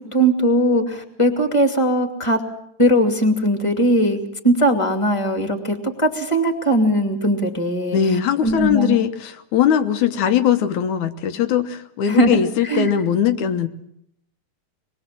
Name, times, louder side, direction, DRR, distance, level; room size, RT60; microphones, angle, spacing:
voice 1, 0.1-2.4 2.8-8.0 8.4-9.0 12.1-12.4 12.6-12.9, right 1 dB, 10° left, 6 dB, 2.0 m, -19 dB
voice 2, 7.9-13.7, left 9 dB, 70° left, 9 dB, 2.4 m, -20 dB
26.0 x 21.5 x 7.6 m, 0.73 s
omnidirectional pair, 3.9 m